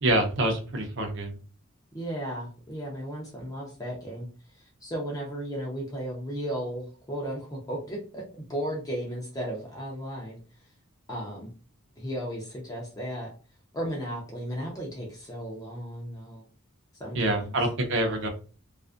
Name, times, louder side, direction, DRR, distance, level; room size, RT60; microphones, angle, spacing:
voice 1, 0.0-1.4 17.1-18.3, right 1 dB, 55° right, 4 dB, 0.6 m, -26 dB
voice 2, 1.9-4.3 4.5-8.2 8.5-10.4 11.1-11.5 12.0-13.3 13.7-16.5 17.0-17.5, equal, 15° left, -2 dB, 0.5 m, -35 dB
2.4 x 2.3 x 2.4 m, 0.37 s
head